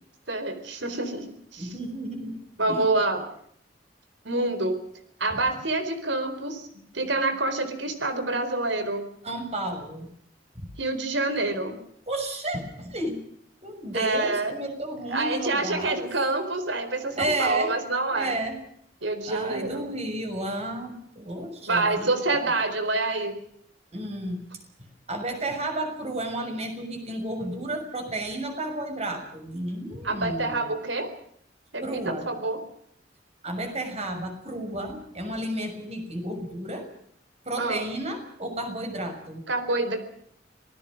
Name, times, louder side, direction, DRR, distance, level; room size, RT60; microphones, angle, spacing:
voice 1, 0.3-1.2 1.5-1.7 2.6-3.2 4.2-4.8 5.2-6.7 6.9-9.0 10.8-11.7 13.9-14.6 15.1-18.3 19.0-19.8 21.7-23.4 30.0-31.1 31.7-32.6 37.6-37.8 39.5-40.0, right 2 dB, 90° right, 10 dB, 4.2 m, -27 dB
voice 2, 1.6-2.4 2.7-2.9 9.2-10.1 10.5-10.7 12.1-13.2 13.6-16.1 17.2-17.7 18.1-18.6 19.3-22.4 23.9-24.4 25.1-30.8 31.8-32.3 33.4-36.9 37.4-39.4, right 1 dB, 35° right, 5 dB, 6.3 m, -32 dB
26.0 x 19.0 x 6.3 m, 0.67 s
head